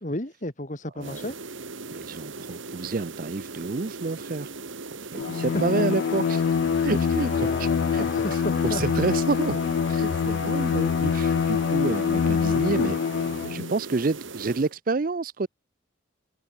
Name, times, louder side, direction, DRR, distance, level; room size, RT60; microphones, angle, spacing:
voice 1, 0.0-1.4 5.4-5.6 7.3-9.1, left 1 dB, 40° left, 2.7 m, -33 dB
voice 2, 1.0-1.3 1.9-4.5 5.1-6.4 6.8-7.7 7.9-8.1 8.6-9.6 9.9-13.0 13.4-15.5, right 3 dB, 45° right, 0.5 m, -29 dB
sound 1, 1.0-14.7, right 3 dB, 75° right, 2.0 m, -39 dB
Bowed string instrument, 5.1-13.7, left 6 dB, 65° left, 0.3 m, -25 dB
open air
head